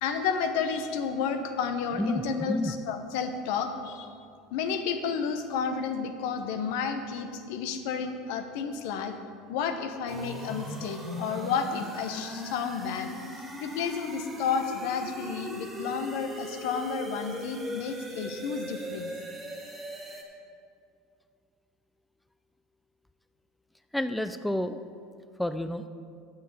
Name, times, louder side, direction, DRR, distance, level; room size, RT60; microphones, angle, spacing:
voice 1, 0.0-4.2 4.5-9.1 9.5-13.1 13.6-19.1, left 6 dB, 70° left, 8 dB, 0.9 m, -31 dB
voice 2, 2.0-2.8 23.9-24.8 25.4-25.8, left 1 dB, 5° left, 11 dB, 0.4 m, -30 dB
sound 1, 10.1-20.2, equal, 15° right, 1.9 m, -39 dB
9.2 x 6.5 x 6.9 m, 2.3 s
hypercardioid pair, 95°, 0 cm